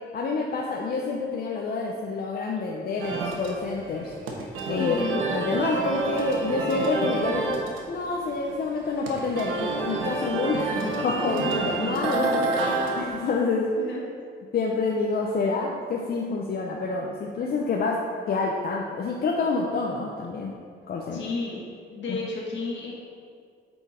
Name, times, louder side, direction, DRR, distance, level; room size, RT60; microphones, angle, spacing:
voice 1, 0.1-4.1 4.7-5.0 5.3-7.6 7.9-12.7 13.0-13.7 14.5-20.5 20.9-21.2 22.1-22.2, left 3 dB, 50° left, -1 dB, 0.7 m, -28 dB
sound 1, 3.0-13.3, right 3 dB, 80° right, 1.1 m, -29 dB
voice 2, 4.7-5.2 11.6-11.7 12.0-12.3 12.9-13.0 13.7-14.0 21.1-21.6 21.9-22.9, left 3 dB, 70° left, -3 dB, 1.8 m, -32 dB
8.1 x 4.5 x 4.3 m, 2.1 s
cardioid pair, 90°, 20 cm